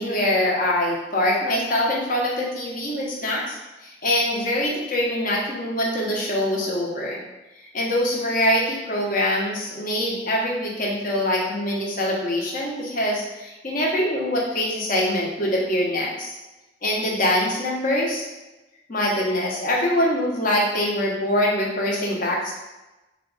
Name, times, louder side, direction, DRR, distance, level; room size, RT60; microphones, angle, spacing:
voice 1, 0.0-7.2 7.7-16.3 16.8-18.3 18.9-22.5, left 1 dB, 50° left, -3 dB, 0.9 m, -24 dB
3.9 x 2.3 x 3.9 m, 1.0 s
head